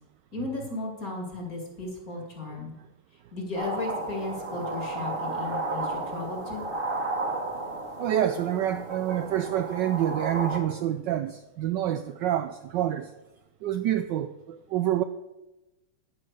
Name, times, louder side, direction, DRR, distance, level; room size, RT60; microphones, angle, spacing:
voice 1, 0.3-2.7 3.3-6.7, left 3 dB, 40° left, 0 dB, 3.0 m, -35 dB
sound 1, 3.5-10.6, right 2 dB, 30° right, 1.3 m, -33 dB
voice 2, 8.0-13.1 13.6-15.0, right 11 dB, 75° right, 10 dB, 1.0 m, -27 dB
9.6 x 8.8 x 6.6 m, 1.0 s
omnidirectional pair, 2.4 m